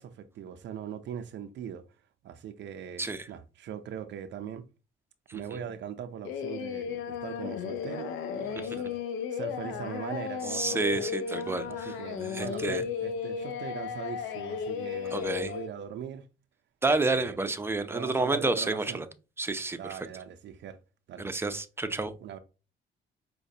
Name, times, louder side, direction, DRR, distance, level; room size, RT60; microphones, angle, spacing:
voice 1, 0.0-1.8 2.2-4.6 5.3-9.0 9.3-16.3 16.9-17.4 17.9-19.0 19.7-20.8 21.1-21.3 22.2-22.4, right 8 dB, 65° right, 0.4 m, -41 dB
Singing, 6.2-15.7, left 7 dB, 90° left, 0.4 m, -35 dB
voice 2, 10.5-11.9 12.3-12.8 15.1-15.5 16.8-19.1 19.4-19.8 21.2-22.1, right 3 dB, 10° right, 0.5 m, -29 dB
4.9 x 2.2 x 2.7 m
cardioid pair, 90°, 20 cm